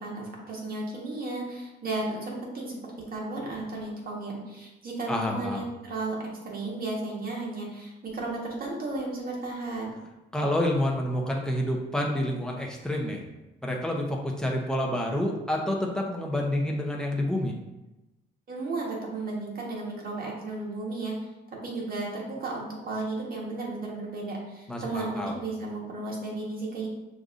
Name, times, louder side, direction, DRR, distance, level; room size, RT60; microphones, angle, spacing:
voice 1, 0.0-2.8 3.1-6.2 6.4-10.0 18.5-21.2 21.6-26.9, right 2 dB, 50° right, -3 dB, 1.4 m, -34 dB
voice 2, 5.1-5.6 10.3-13.2 13.6-17.6 24.7-25.3, left 1 dB, 5° left, -1 dB, 0.8 m, -28 dB
6.4 x 2.6 x 2.6 m, 0.99 s
cardioid pair, 90°, 20 cm